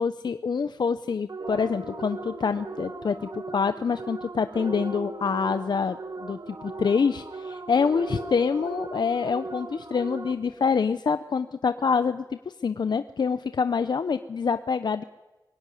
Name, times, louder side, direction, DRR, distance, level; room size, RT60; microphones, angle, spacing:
voice 1, 0.0-15.0, left 5 dB, 70° left, 11 dB, 0.7 m, -26 dB
sound 1, 1.3-10.7, right 4 dB, 50° right, 0.9 m, -40 dB
sound 2, 1.4-10.6, right 1 dB, 70° right, 7.8 m, -42 dB
23.5 x 17.5 x 9.9 m, 1.1 s
wide cardioid pair, 110°, 8 cm